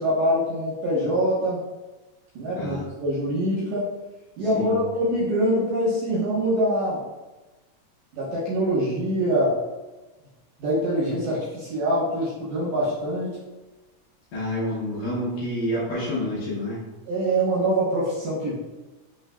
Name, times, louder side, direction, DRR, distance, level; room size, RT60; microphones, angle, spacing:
voice 1, 0.0-1.6 2.4-3.9 4.4-7.0 8.1-9.6 10.6-13.4 17.1-18.5, right 1 dB, 65° right, -7 dB, 2.0 m, -24 dB
voice 2, 2.6-2.9 4.5-4.9 14.3-16.8, left 1 dB, 70° left, -8 dB, 2.4 m, -28 dB
6.2 x 3.2 x 2.2 m, 1.2 s
omnidirectional pair, 4.6 m